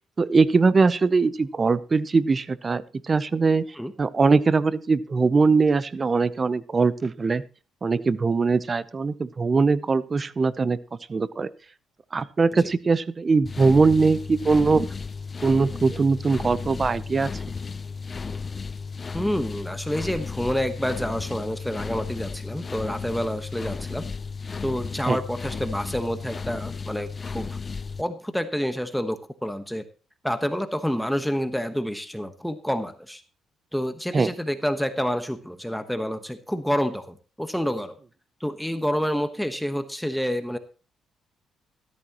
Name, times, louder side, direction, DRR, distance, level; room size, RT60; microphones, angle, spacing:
voice 1, 0.2-3.7 4.0-7.4 7.8-10.8 11.1-11.5 12.1-14.9 15.4-17.3 25.1-25.2 34.1-34.3, right 4 dB, 35° right, 17 dB, 0.7 m, -21 dB
sound 1, 13.5-28.0, left 5 dB, 35° left, 0.5 m, -34 dB
voice 2, 19.1-24.1 24.6-27.6 28.0-29.8 30.2-33.2 33.7-38.0 38.4-40.6, equal, ahead, 9 dB, 1.2 m, -28 dB
14.0 x 13.0 x 3.0 m, 0.35 s
cardioid pair, 90°, 0 cm